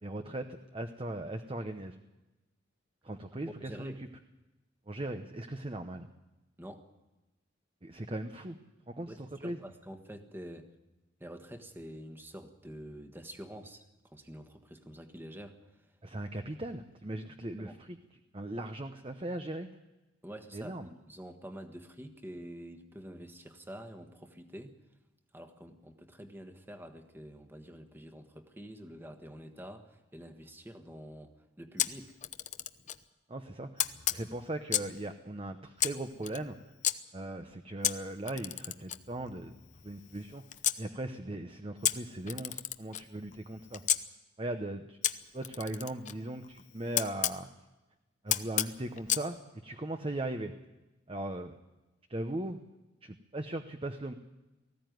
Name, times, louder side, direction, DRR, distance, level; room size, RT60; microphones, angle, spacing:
voice 1, 0.0-1.9 3.0-3.9 4.9-6.1 7.8-8.6 8.9-9.6 16.0-18.0 18.3-19.7 20.5-20.9 33.3-33.8 34.1-36.5 37.1-39.5 39.8-40.4 40.8-43.8 44.4-45.0 45.3-47.5 48.2-49.4 49.6-50.5 51.1-51.5 52.1-52.6 53.0-54.1, right 1 dB, 30° right, 7 dB, 0.9 m, -38 dB
voice 2, 3.6-4.0 6.6-6.8 9.1-10.7 11.2-15.6 17.6-17.8 20.2-24.7 25.3-32.2, equal, 10° right, 6 dB, 1.5 m, -47 dB
Camera, 31.8-33.0 33.8-35.0 35.8-36.9 37.8-40.8 41.8-44.0 45.0-47.4 48.3-49.3, left 11 dB, 40° left, 0.8 m, -33 dB
19.0 x 15.5 x 9.3 m, 1.1 s
head